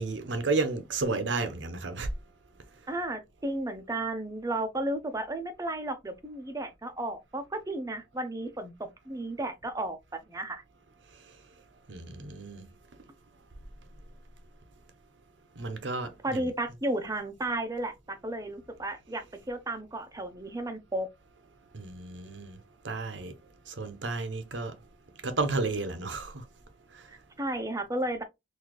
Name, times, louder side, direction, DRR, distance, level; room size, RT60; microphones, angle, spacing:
voice 1, 0.0-2.1 11.9-12.7 15.6-16.5 21.7-22.6 22.8-23.3 23.7-24.7 25.2-26.4, right 3 dB, 85° right, 0.8 m, -32 dB
voice 2, 2.9-10.6 16.2-21.1 27.1-28.2, right 1 dB, 20° right, 0.7 m, -33 dB
4.1 x 2.7 x 3.0 m
head